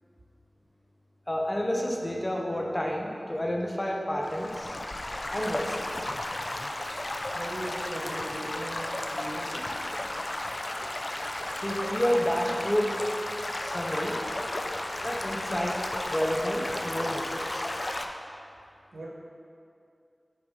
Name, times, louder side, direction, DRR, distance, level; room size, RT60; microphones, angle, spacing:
voice 1, 1.3-4.7 5.3-5.8 11.5-13.0 13.4-14.2 15.0-17.7, equal, 25° left, 0 dB, 0.8 m, -30 dB
Stream / Gurgling / Trickle dribble, 4.2-18.1, left 1 dB, 50° left, 0.4 m, -34 dB
voice 2, 7.2-9.6 18.9-19.1, right 1 dB, 90° right, -4 dB, 1.1 m, -39 dB
5.9 x 4.0 x 5.1 m, 2.4 s
wide cardioid pair, 40°, 0 cm